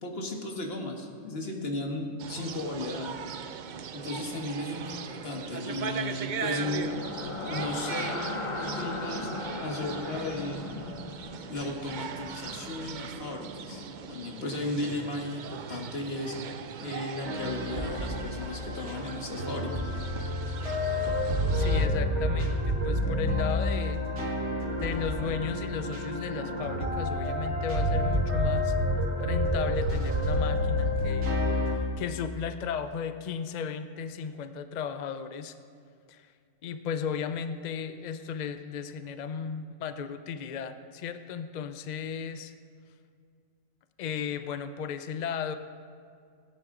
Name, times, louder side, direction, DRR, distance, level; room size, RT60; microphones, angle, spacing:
voice 1, 0.0-3.2 3.9-7.0 7.4-8.2 8.6-9.3 9.6-10.9 11.5-19.7, left 2 dB, 45° left, 1 dB, 1.6 m, -35 dB
sound 1, 2.2-21.9, right 7 dB, 85° right, 0.4 m, -39 dB
sound 2, 6.5-14.5, left 2 dB, 30° left, 0.7 m, -38 dB
sound 3, 17.2-31.8, left 1 dB, 55° right, 2.1 m, -29 dB
voice 2, 21.5-24.0 24.8-28.7 29.2-31.3 31.7-35.5 36.1-36.3 36.6-42.5 44.0-45.5, left 7 dB, 70° left, 10 dB, 0.4 m, -35 dB
17.5 x 9.8 x 3.8 m, 2.2 s
omnidirectional pair, 1.4 m